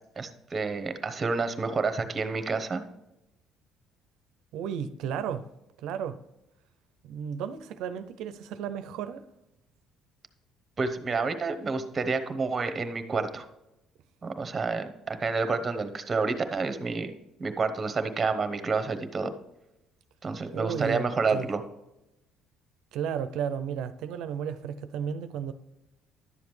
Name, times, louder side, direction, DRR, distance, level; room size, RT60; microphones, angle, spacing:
voice 1, 0.2-2.8 10.8-13.5 14.2-17.1 17.4-19.3 20.2-21.6, right 4 dB, 25° right, 0.9 m, -29 dB
voice 2, 4.5-5.5 5.8-6.2 7.0-9.2 20.5-21.5 22.9-25.5, right 8 dB, 80° right, 0.5 m, -33 dB
11.0 x 7.1 x 3.2 m
cardioid pair, 115°, 0 cm